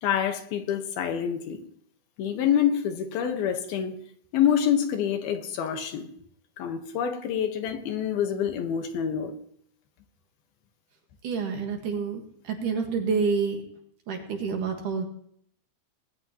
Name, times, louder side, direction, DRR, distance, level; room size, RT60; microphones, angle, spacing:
voice 1, 0.0-1.6 2.2-4.0 4.3-6.1 6.6-9.3, left 9 dB, 75° left, 3.1 m, -26 dB
voice 2, 11.2-13.6 14.1-15.1, right 5 dB, 60° right, 2.9 m, -28 dB
20.5 x 19.0 x 3.0 m
omnidirectional pair, 4.5 m